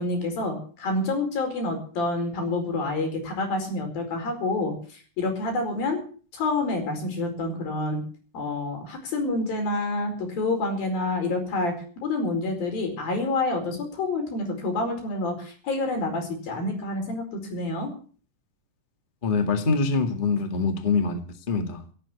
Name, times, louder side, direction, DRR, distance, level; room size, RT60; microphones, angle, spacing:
voice 1, 0.0-6.0 6.3-8.0 8.3-11.7 12.0-17.9, left 2 dB, 75° left, 5 dB, 6.5 m, -28 dB
voice 2, 19.2-21.2 21.5-21.8, left 4 dB, 25° left, 6 dB, 1.2 m, -24 dB
17.5 x 9.3 x 8.5 m, 0.43 s
omnidirectional pair, 4.2 m